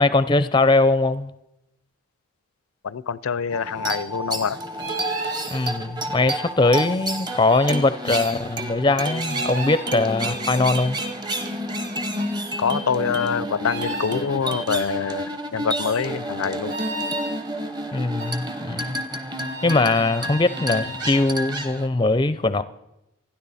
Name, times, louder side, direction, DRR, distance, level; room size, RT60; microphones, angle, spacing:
voice 1, 0.0-1.3 5.5-11.0 17.9-19.0 19.6-22.6, left 2 dB, 20° left, 0.4 m, -21 dB
voice 2, 2.8-4.6 12.6-16.8, left 6 dB, 85° left, 0.5 m, -25 dB
sound 1, 3.5-21.9, right 1 dB, 20° right, 0.9 m, -30 dB
sound 2, 4.8-5.5 7.5-7.7 9.2-9.8 12.2-12.3 13.6-14.2 16.7-17.3 18.2-18.3 19.4-21.3, right 2 dB, 55° right, 6.0 m, -33 dB
27.5 x 10.5 x 4.1 m
head